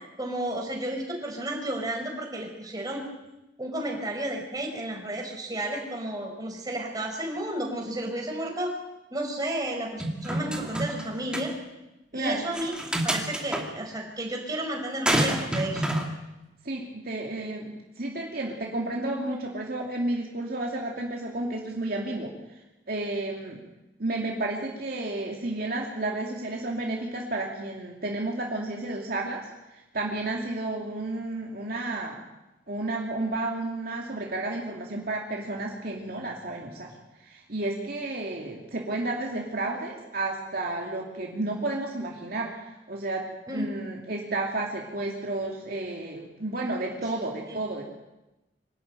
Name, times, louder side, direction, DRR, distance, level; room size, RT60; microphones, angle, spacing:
voice 1, 0.2-3.1 3.6-8.7 9.1-11.5 12.1-12.7 13.0-15.8 43.5-43.7 47.5-47.6, right 1 dB, 20° right, 0 dB, 5.1 m, -32 dB
sound 1, 10.0-11.0 11.3-11.5 12.5-13.6 15.1-16.1, right 1 dB, 5° right, 2.5 m, -27 dB
voice 2, 12.1-12.5 16.6-22.3 22.9-23.6 24.0-29.4 29.7-32.2 32.7-36.9 37.2-47.8, right 2 dB, 55° right, -1 dB, 2.7 m, -32 dB
25.0 x 12.5 x 9.1 m, 0.98 s
head